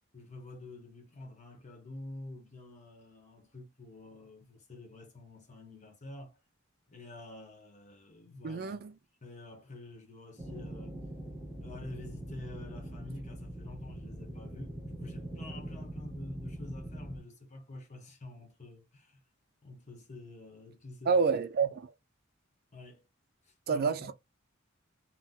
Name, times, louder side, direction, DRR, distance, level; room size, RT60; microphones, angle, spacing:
voice 1, 0.1-6.4 6.9-8.8 9.2-11.0 11.6-19.2 19.6-21.2 22.7-23.0 23.4-24.1, left 2 dB, 35° left, 1.0 m, -48 dB
voice 2, 8.4-8.9 21.1-21.9 23.7-24.1, right 5 dB, 50° right, 0.4 m, -28 dB
sound 1, 10.4-17.2, right 1 dB, 5° right, 1.4 m, -42 dB
3.8 x 2.1 x 2.7 m
head